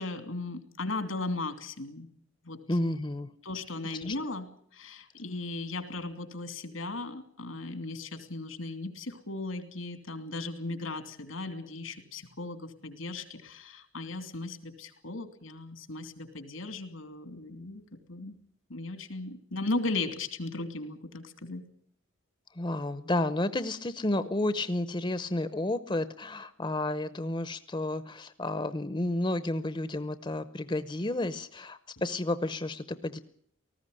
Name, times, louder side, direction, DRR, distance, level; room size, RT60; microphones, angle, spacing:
voice 1, 0.0-2.1 2.4-2.6 3.4-18.3 18.7-21.6, left 2 dB, 90° left, 9 dB, 2.8 m, -37 dB
voice 2, 2.7-3.3 4.0-4.1 22.5-33.2, left 1 dB, 25° left, 13 dB, 0.8 m, -31 dB
19.0 x 15.0 x 10.0 m, 0.63 s
head